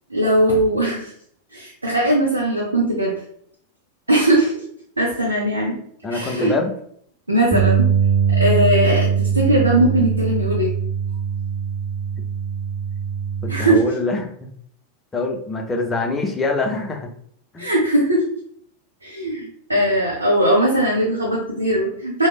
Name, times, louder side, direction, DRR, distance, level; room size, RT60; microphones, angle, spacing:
voice 1, 0.1-1.1 1.5-3.1 4.1-4.6 5.0-5.8 6.1-6.5 7.3-7.9 8.3-10.7 13.5-13.8 17.6-18.2 19.0-22.3, right 1 dB, 80° right, -3 dB, 0.5 m, -19 dB
voice 2, 6.0-6.7 13.4-14.5 15.1-17.1 17.5-17.7, left 3 dB, 15° left, 2 dB, 0.5 m, -24 dB
Bass guitar, 7.5-13.8, right 7 dB, 35° right, 0.6 m, -21 dB
3.1 x 2.0 x 2.3 m, 0.64 s
figure-of-eight pair, 90°, 0 cm